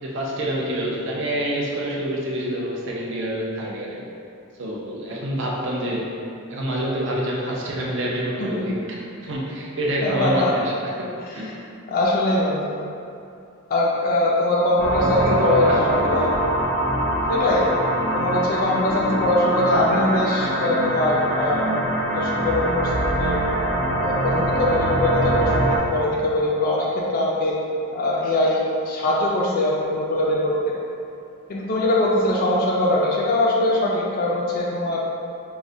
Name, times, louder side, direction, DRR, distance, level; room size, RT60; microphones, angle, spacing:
voice 1, 0.0-4.0 4.6-10.7 11.0-11.5 15.2-16.4, right 1 dB, 55° right, -3 dB, 0.5 m, -27 dB
voice 2, 10.0-10.5 11.9-12.7 13.7-15.7 16.1-16.3 17.3-17.7 18.1-21.7 22.1-23.4 24.0-27.6 27.9-30.7 31.5-35.0, left 1 dB, 40° left, -4 dB, 0.3 m, -22 dB
sound 1, 14.8-25.8, right 1 dB, 85° right, 1.1 m, -23 dB
4.6 x 2.1 x 2.6 m, 2.6 s
head